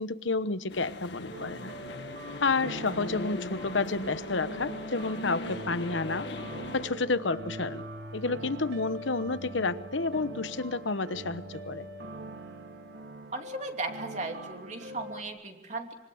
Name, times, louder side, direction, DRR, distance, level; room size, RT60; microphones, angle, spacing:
voice 1, 0.0-1.7 2.4-6.3 6.7-7.8 8.1-11.9, left 3 dB, 85° left, 13 dB, 1.1 m, -30 dB
sound 1, 0.7-6.9, left 1 dB, 70° left, 1.9 m, -39 dB
sound 2, 1.3-15.2, right 2 dB, 65° right, 2.8 m, -42 dB
voice 2, 13.3-15.9, right 3 dB, 40° right, 4 dB, 3.0 m, -37 dB
26.0 x 25.0 x 8.0 m, 1.0 s
head